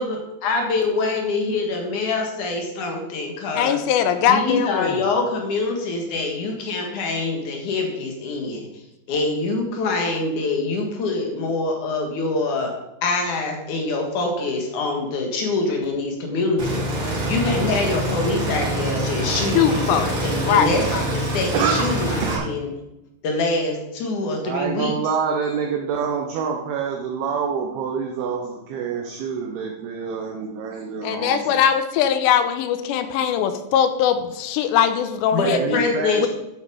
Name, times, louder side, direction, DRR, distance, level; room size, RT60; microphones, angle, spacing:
voice 1, 0.0-3.8 4.3-8.7 9.1-12.7 13.0-16.8 17.3-22.7 23.2-24.9 35.3-36.3, left 3 dB, 55° left, 2 dB, 2.6 m, -25 dB
voice 2, 3.6-5.1 19.5-20.1 20.4-20.7 31.0-35.8 36.2-36.3, left 8 dB, 90° left, 9 dB, 2.9 m, -20 dB
sound 1, 16.6-22.4, right 1 dB, 35° right, 2.6 m, -25 dB
voice 3, 21.5-21.9 22.2-22.4 24.4-31.6 35.4-36.3, right 6 dB, 70° right, 1 dB, 2.7 m, -26 dB
10.5 x 7.9 x 5.1 m, 0.92 s
omnidirectional pair, 5.1 m